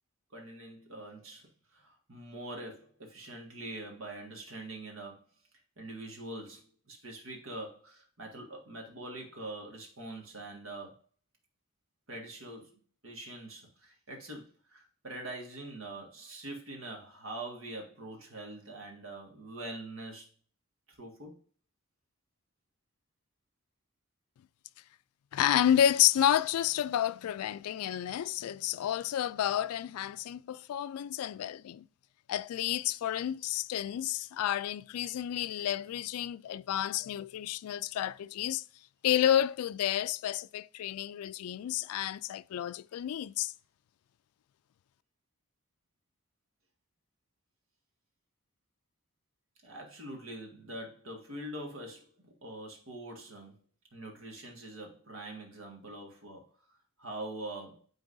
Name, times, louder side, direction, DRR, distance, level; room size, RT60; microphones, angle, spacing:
voice 1, 0.3-1.5 1.7-5.2 5.8-11.0 12.1-20.3 21.0-21.4 49.6-52.1 52.4-53.6 53.9-56.4 56.7-57.8, right 1 dB, 65° right, 1.8 m, -44 dB
voice 2, 25.3-31.9 32.3-38.6 39.0-43.5, left 11 dB, 85° left, 0.3 m, -30 dB
9.6 x 3.8 x 2.6 m
head